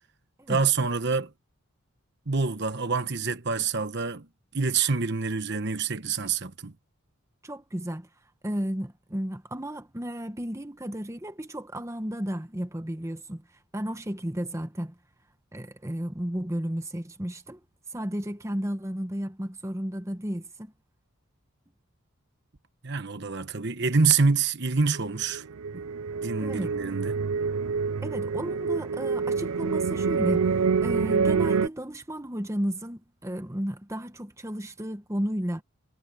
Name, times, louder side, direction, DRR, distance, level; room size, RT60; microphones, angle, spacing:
voice 1, 0.5-1.3 2.3-4.3 4.5-6.7 22.8-25.4 25.7-25.8 26.2-27.2, right 4 dB, 55° right, 1.2 m, -26 dB
voice 2, 7.4-8.1 8.4-13.4 13.7-14.9 15.5-17.6 17.9-20.7 26.4-26.8 28.0-35.6, equal, 15° right, 1.1 m, -33 dB
sound 1, 24.9-31.7, right 5 dB, 85° right, 0.5 m, -27 dB
head